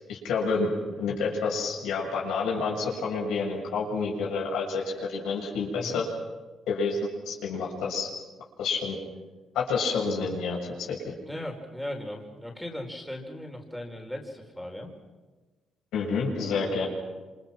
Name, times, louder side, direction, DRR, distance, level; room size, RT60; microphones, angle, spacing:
voice 1, 0.1-6.1 6.7-7.0 7.3-8.1 8.6-9.0 9.5-11.0 15.9-16.9, left 4 dB, 85° left, -1 dB, 7.1 m, -29 dB
voice 2, 11.2-14.9, left 1 dB, ahead, 1 dB, 4.8 m, -37 dB
27.5 x 26.5 x 6.1 m, 1.3 s
cardioid pair, 90°, 0 cm